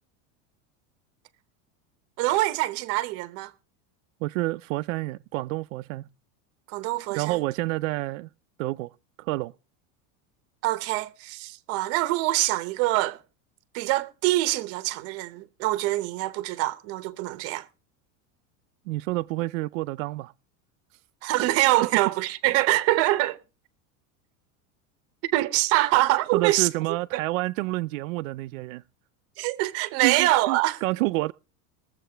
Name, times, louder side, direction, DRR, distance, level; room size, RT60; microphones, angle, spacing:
voice 1, 2.2-3.5 6.7-7.4 10.6-13.2 13.7-17.7 21.2-23.4 25.3-26.7 27.1-27.2 29.4-30.8, right 17 dB, 35° right, 0.8 m, -24 dB
voice 2, 4.2-6.0 7.1-8.3 8.6-8.9 9.2-9.5 18.9-20.3 26.3-28.8 30.0-31.3, right 20 dB, 75° right, 0.5 m, -28 dB
21.5 x 7.6 x 3.4 m
supercardioid pair, 175°, 40 cm